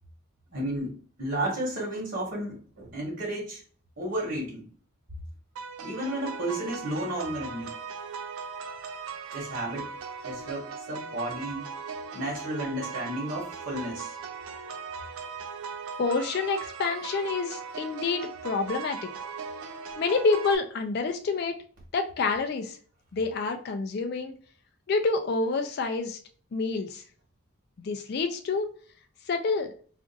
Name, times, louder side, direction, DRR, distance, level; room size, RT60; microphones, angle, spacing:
voice 1, 0.5-3.6 4.0-4.7 5.8-7.7 9.3-9.9 10.2-11.7 12.1-14.2, right 1 dB, 55° right, -3 dB, 1.0 m, -33 dB
sound 1, 5.6-20.6, right 5 dB, 90° right, 0.4 m, -39 dB
voice 2, 16.0-19.1 20.0-21.6 21.9-22.8 23.1-24.3 24.9-26.2 26.5-27.0 27.8-28.7 29.3-29.7, left 4 dB, 50° left, 5 dB, 0.3 m, -28 dB
2.5 x 2.4 x 3.8 m, 0.43 s
head